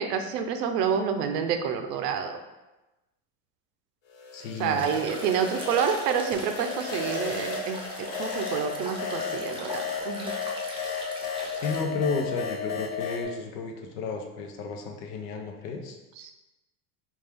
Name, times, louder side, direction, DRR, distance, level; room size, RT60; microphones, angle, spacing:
voice 1, 0.0-2.4 4.6-10.4 16.2-16.3, right 7 dB, 85° right, 6 dB, 0.6 m, -28 dB
sound 1, 4.2-13.2, left 5 dB, 55° left, 1.1 m, -34 dB
voice 2, 4.3-4.9 11.5-16.0, left 4 dB, 80° left, 3 dB, 0.8 m, -32 dB
sound 2, 4.8-11.8, right 1 dB, 10° right, 0.5 m, -41 dB
4.3 x 2.4 x 3.4 m, 1.0 s
supercardioid pair, 110°, 46 cm